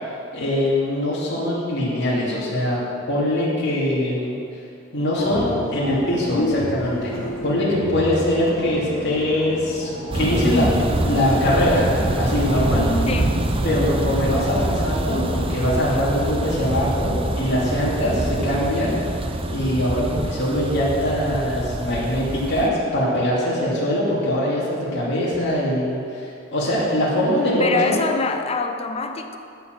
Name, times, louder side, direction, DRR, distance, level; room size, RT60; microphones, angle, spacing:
voice 1, 0.3-2.8 3.1-4.3 4.9-10.7 11.1-11.9 12.2-13.0 13.6-19.0 19.5-28.0, left 1 dB, 60° left, -7 dB, 2.6 m, -22 dB
sound 1, 5.2-14.8, equal, 85° left, 1.7 m, -29 dB
sound 2, 10.1-22.7, right 1 dB, 25° right, 0.6 m, -25 dB
voice 2, 13.1-13.4 27.6-29.4, left 4 dB, 30° left, 6 dB, 0.6 m, -25 dB
12.0 x 4.9 x 7.6 m, 2.6 s
head